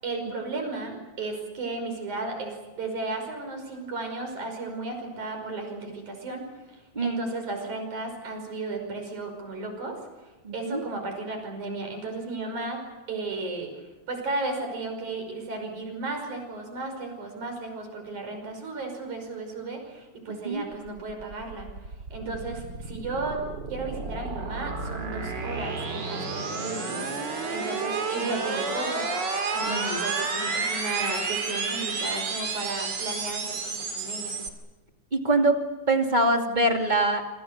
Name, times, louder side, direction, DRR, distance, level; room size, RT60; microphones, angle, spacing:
voice 1, 0.0-10.0 10.5-12.8 13.1-13.7 14.1-23.4 23.7-29.1 29.5-34.4, right 3 dB, 75° right, 4 dB, 7.0 m, -34 dB
voice 2, 6.9-7.2 10.4-10.8 20.3-20.6 22.3-22.4 26.9-27.1 29.7-30.0 35.1-35.6 35.9-37.2, right 2 dB, 15° right, 3 dB, 2.4 m, -24 dB
sound 1, 20.7-34.5, right 4 dB, 40° right, 2.8 m, -31 dB
27.0 x 26.0 x 6.7 m, 1.1 s
omnidirectional pair, 3.4 m